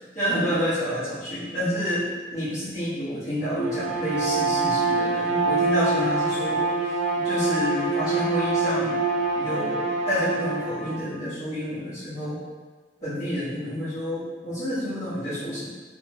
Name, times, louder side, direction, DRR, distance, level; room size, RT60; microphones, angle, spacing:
voice 1, 0.1-2.1 2.3-6.7 7.2-9.0 9.3-12.4 13.0-15.7, equal, 40° left, -16 dB, 1.3 m, -28 dB
Bowed string instrument, 3.5-11.0, right 3 dB, 45° right, 0.4 m, -25 dB
3.4 x 2.1 x 2.9 m, 1.4 s
head